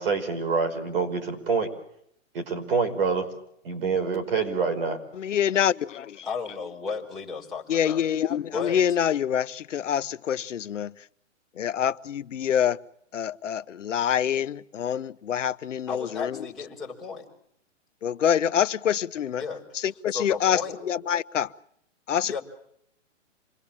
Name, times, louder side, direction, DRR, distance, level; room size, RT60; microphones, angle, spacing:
voice 1, 0.0-1.7 2.3-3.3 3.6-5.0, right 5 dB, 50° right, 6 dB, 5.4 m, -26 dB
voice 2, 5.2-6.2 7.7-10.9 11.6-12.8 13.1-16.4 18.0-19.4 19.8-20.6 20.9-21.5 22.1-22.4, left 9 dB, 75° left, 14 dB, 1.2 m, -26 dB
voice 3, 6.2-8.0 8.5-8.8 15.9-17.3 19.4-20.7 22.2-22.4, left 5 dB, ahead, 2 dB, 4.7 m, -34 dB
27.5 x 22.5 x 7.4 m, 0.71 s
hypercardioid pair, 170°, 38 cm